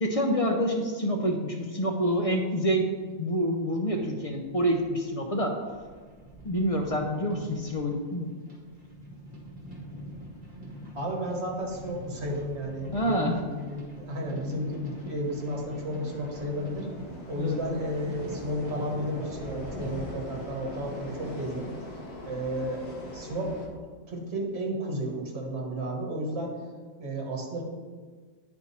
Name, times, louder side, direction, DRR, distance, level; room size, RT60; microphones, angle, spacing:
voice 1, 0.0-2.9 3.2-5.5 6.4-8.3 12.9-13.3 17.4-17.6, equal, 40° left, 1 dB, 0.6 m, -27 dB
sound 1, 2.4-21.6, equal, 35° right, 2.0 m, -44 dB
sound 2, 8.6-23.7, left 1 dB, 55° left, 1.3 m, -44 dB
voice 2, 10.9-16.9 17.3-21.7 22.2-22.9 23.1-23.6 24.1-26.6 27.0-27.6, equal, 50° right, -1 dB, 1.6 m, -33 dB
9.3 x 4.4 x 4.2 m, 1.5 s
omnidirectional pair, 1.4 m